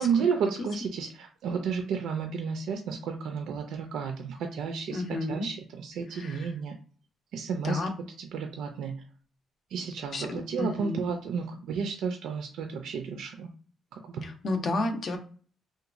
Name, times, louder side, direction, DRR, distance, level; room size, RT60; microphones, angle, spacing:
voice 1, 0.0-6.8 7.3-7.8 8.2-9.0 9.7-13.5 13.9-14.2, right 6 dB, 85° right, 4 dB, 0.4 m, -32 dB
voice 2, 4.9-5.5 6.2-6.4 7.5-7.9 10.1-11.0 14.2-15.2, left 2 dB, 55° left, 5 dB, 0.6 m, -31 dB
2.9 x 2.2 x 2.4 m, 0.41 s
cardioid pair, 90°, 0 cm